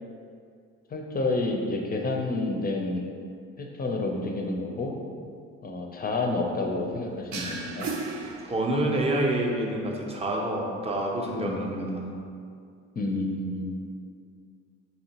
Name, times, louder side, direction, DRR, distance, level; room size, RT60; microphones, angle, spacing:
voice 1, 0.9-3.0 3.6-5.0 5.6-7.9 11.4-12.2 13.0-13.7, left 2 dB, 30° left, 2 dB, 0.5 m, -29 dB
sound 1, 7.3-9.1, right 4 dB, 65° right, 0.6 m, -35 dB
voice 2, 8.4-12.1, right 1 dB, 20° right, -1 dB, 0.6 m, -27 dB
4.2 x 2.8 x 2.8 m, 2.3 s
supercardioid pair, 75°, 33 cm